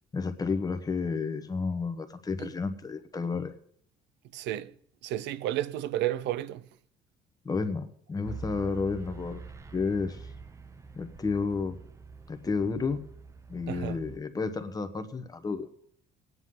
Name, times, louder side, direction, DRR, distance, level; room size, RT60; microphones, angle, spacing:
voice 1, 0.1-3.5 7.4-9.4 9.7-10.2 10.9-11.8 12.3-13.0 13.5-15.7, left 4 dB, 20° left, 1.0 m, -31 dB
voice 2, 4.3-4.7 5.0-6.6 13.7-14.0, right 13 dB, 85° right, 0.6 m, -32 dB
sound 1, 8.2-14.2, right 4 dB, 15° right, 0.6 m, -45 dB
20.0 x 9.6 x 3.8 m
cardioid pair, 130°, 18 cm